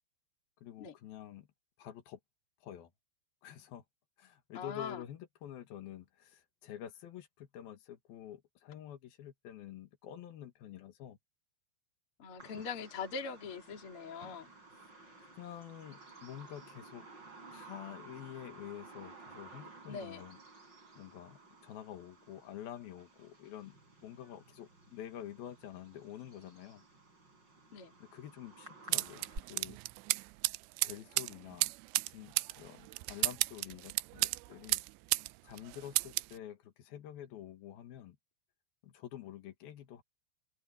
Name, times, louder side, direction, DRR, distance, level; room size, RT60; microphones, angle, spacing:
voice 1, 0.6-1.5 1.8-2.2 2.6-2.9 3.4-3.8 4.2-11.2 12.5-12.6 15.2-17.1 17.5-20.4 21.0-23.7 24.0-26.8 28.0-29.8 30.8-31.7 32.1-34.8 35.4-38.2 38.8-40.0, left 11 dB, 65° left, 2.9 m, -48 dB
voice 2, 4.5-5.0 12.2-14.5 19.9-20.2 27.7-27.9, left 5 dB, 35° left, 2.7 m, -42 dB
Bird vocalization bird call bird song, 12.4-29.4, right 3 dB, 20° right, 6.4 m, -54 dB
sound 1, 28.9-35.3 35.6-36.3, right 23 dB, 85° right, 2.5 m, -33 dB
open air
omnidirectional pair, 5.5 m